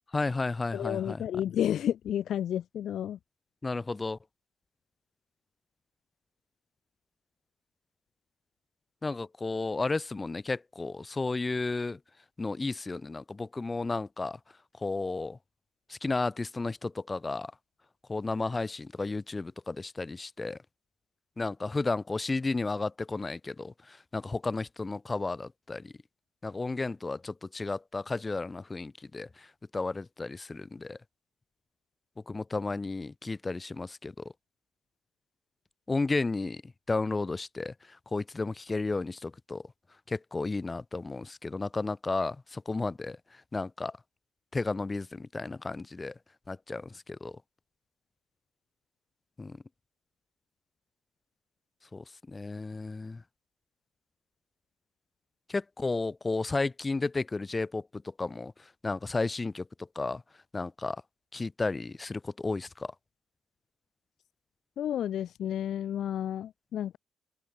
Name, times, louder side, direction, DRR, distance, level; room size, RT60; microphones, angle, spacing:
voice 1, 0.1-1.2 3.6-4.2 9.0-12.0 12.4-14.4 14.8-15.4 15.9-17.5 18.1-20.6 21.4-25.9 26.4-31.0 32.3-34.3 35.9-39.7 40.1-44.0 44.5-46.2 46.5-47.4 49.4-49.6 51.9-53.2 55.5-60.2 60.5-61.0 61.3-62.9, left 3 dB, 25° left, 2.5 m, -33 dB
voice 2, 0.7-3.2 64.8-67.0, left 10 dB, 70° left, 0.6 m, -31 dB
cardioid pair, 90°, 0 cm